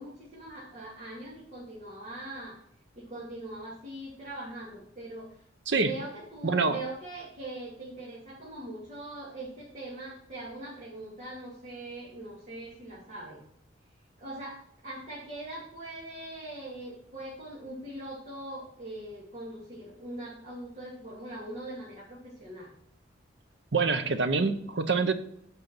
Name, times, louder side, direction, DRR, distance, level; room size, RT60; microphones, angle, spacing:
voice 1, 0.0-2.6 3.0-5.4 5.7-13.4 14.2-22.7, right 1 dB, 40° right, -6 dB, 2.4 m, -41 dB
voice 2, 6.4-6.8 23.7-25.1, right 4 dB, 65° right, 10 dB, 0.8 m, -26 dB
8.0 x 5.4 x 6.1 m, 0.71 s
head